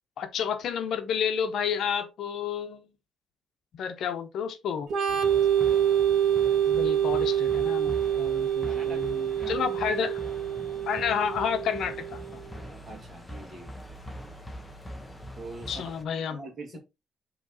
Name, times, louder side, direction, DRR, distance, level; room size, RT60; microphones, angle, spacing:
voice 1, 0.2-2.9 3.7-4.9 6.7-10.2 10.9-12.4 15.7-16.4, left 7 dB, 65° left, 0.9 m, -30 dB
Organ, 4.9-12.4, right 9 dB, 60° right, 1.2 m, -26 dB
sound 1, 5.1-16.0, equal, 5° left, 0.8 m, -43 dB
voice 2, 8.7-9.1 9.4-9.6 12.9-13.7 15.4-15.9 16.3-16.8, right 3 dB, 25° right, 1.8 m, -43 dB
7.8 x 3.2 x 4.0 m
cardioid pair, 175°, 0 cm